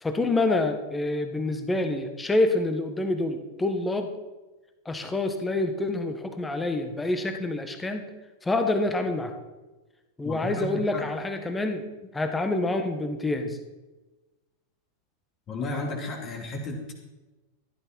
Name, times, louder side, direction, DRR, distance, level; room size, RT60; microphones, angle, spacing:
voice 1, 0.0-4.1 4.8-8.1 8.4-9.3 10.2-11.8 12.1-13.6, left 2 dB, 10° left, 6 dB, 1.6 m, -27 dB
voice 2, 10.2-11.0 15.5-17.0, left 2 dB, 30° left, 0 dB, 3.1 m, -33 dB
15.0 x 12.0 x 4.7 m, 1.2 s
figure-of-eight pair, 90°, 0 cm